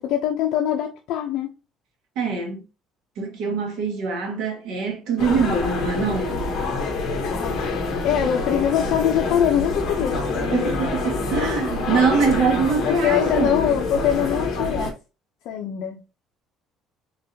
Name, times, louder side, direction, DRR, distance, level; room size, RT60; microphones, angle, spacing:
voice 1, 0.0-1.5 7.3-7.6 8.0-10.7 12.8-14.9 15.4-16.0, left 10 dB, 65° left, 0.6 m, -23 dB
voice 2, 2.1-2.6 3.2-6.4 10.5-13.6, right 5 dB, 70° right, 1.4 m, -23 dB
sound 1, 5.2-14.9, left 3 dB, 45° left, 1.2 m, -26 dB
3.9 x 3.8 x 2.7 m
cardioid pair, 180°, 0 cm